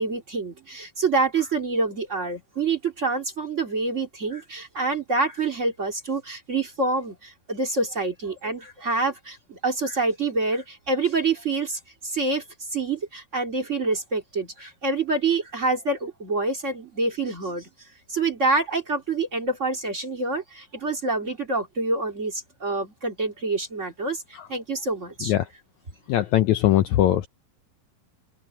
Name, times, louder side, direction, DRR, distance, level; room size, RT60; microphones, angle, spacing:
voice 1, 0.0-12.4 12.7-17.7 18.1-24.2 24.5-25.3, right 3 dB, 25° right, 1.7 m, -26 dB
voice 2, 26.1-27.3, left 13 dB, 90° left, 1.6 m, -21 dB
omnidirectional pair, 4.2 m